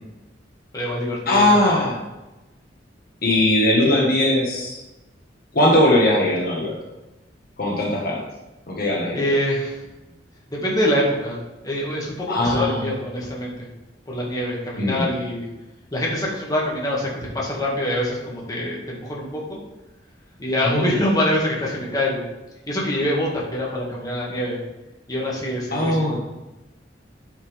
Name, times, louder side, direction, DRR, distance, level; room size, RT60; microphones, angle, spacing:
voice 1, 0.7-1.5 9.1-9.8 10.5-11.4 11.6-13.7 14.1-15.5 15.9-17.1 17.3-19.6 20.4-22.2 22.7-24.6 25.1-26.1, left 1 dB, 20° left, -4 dB, 1.9 m, -24 dB
voice 2, 1.3-2.0 3.2-4.8 5.5-6.8 7.6-8.2 8.7-9.2 12.3-12.8 14.8-15.1 20.6-20.8 25.7-26.2, left 1 dB, 55° left, -2 dB, 1.5 m, -19 dB
9.1 x 5.8 x 3.5 m, 1.0 s
head